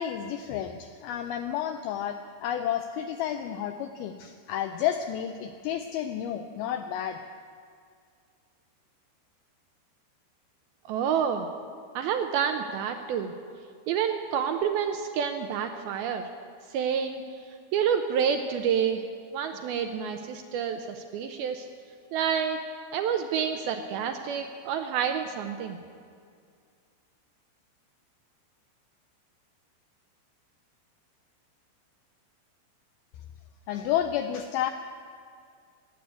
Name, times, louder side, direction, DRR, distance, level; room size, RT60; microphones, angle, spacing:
voice 1, 0.0-7.2 33.7-34.7, left 10 dB, 90° left, 7 dB, 2.1 m, -31 dB
voice 2, 10.9-11.5 12.0-13.3 13.9-16.3 16.7-17.2 17.7-19.0 19.3-21.7 22.1-22.6 22.9-25.8, right 7 dB, 80° right, 6 dB, 2.3 m, -28 dB
16.0 x 9.3 x 8.2 m, 2.2 s
omnidirectional pair, 4.9 m